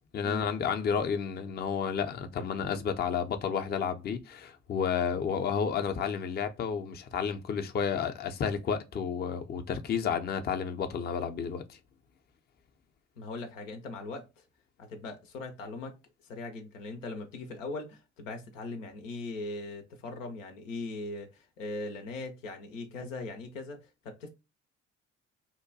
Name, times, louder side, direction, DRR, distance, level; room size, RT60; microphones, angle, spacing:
voice 1, 0.1-11.8, left 7 dB, 25° left, 0.4 m, -31 dB
voice 2, 13.2-14.4 14.8-16.0 16.2-23.8 24.0-24.3, left 2 dB, 85° left, 0.5 m, -40 dB
2.7 x 2.2 x 2.6 m
hypercardioid pair, 45°, 38 cm